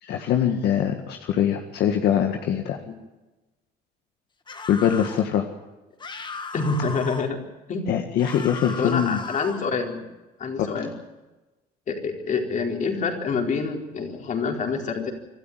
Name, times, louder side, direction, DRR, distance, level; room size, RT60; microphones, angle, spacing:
voice 1, 0.0-2.8 4.7-5.5 7.9-9.2 10.6-10.7, left 9 dB, 75° left, 4 dB, 1.8 m, -23 dB
sound 1, 4.5-5.3 6.0-7.3 8.2-9.7, left 4 dB, 25° left, 1.8 m, -36 dB
voice 2, 6.5-7.4 7.7-7.8 8.8-10.0 10.4-10.9 11.9-15.1, left 4 dB, 50° left, 3 dB, 4.3 m, -27 dB
25.5 x 12.5 x 9.4 m, 1.1 s
cardioid pair, 110°, 17 cm